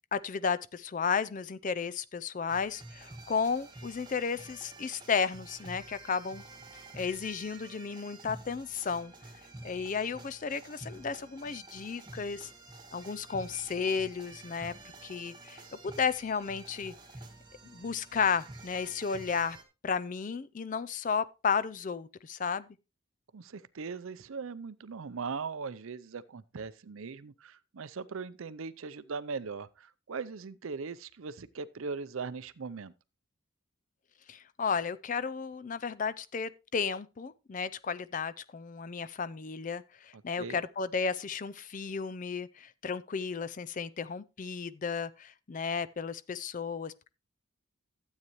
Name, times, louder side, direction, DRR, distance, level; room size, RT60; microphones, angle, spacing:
voice 1, 0.1-6.4 6.9-9.1 9.6-12.5 12.9-14.7 15.0-15.6 15.8-16.9 17.6-19.6 19.8-22.7 34.3-47.1, left 5 dB, 35° left, 0.4 m, -33 dB
sound 1, 2.5-19.6, right 2 dB, 20° right, 1.5 m, -49 dB
voice 2, 23.3-32.9 40.4-40.6, right 5 dB, 70° right, 0.5 m, -39 dB
12.5 x 8.3 x 3.0 m
head